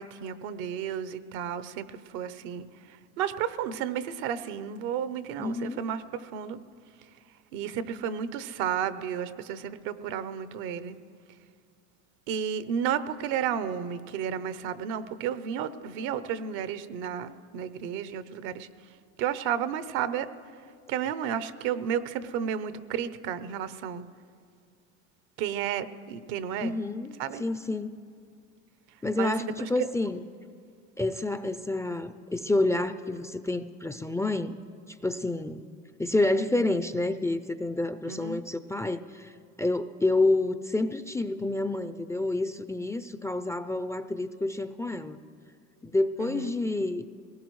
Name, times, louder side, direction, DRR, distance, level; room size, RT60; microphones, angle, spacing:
voice 1, 0.0-6.6 7.5-11.0 12.3-18.7 19.2-20.3 20.9-24.0 25.4-26.8 27.2-27.4 29.2-29.5 29.8-29.9 38.0-38.4 46.2-46.5, right 8 dB, 75° right, 14 dB, 0.8 m, -32 dB
voice 2, 5.4-5.8 26.6-28.0 29.0-30.2 31.0-34.6 35.0-35.7 36.0-39.3 39.6-45.2 45.8-47.1, left 2 dB, 10° left, 12 dB, 0.4 m, -28 dB
21.5 x 18.5 x 3.1 m, 2.2 s
supercardioid pair, 85°, 34 cm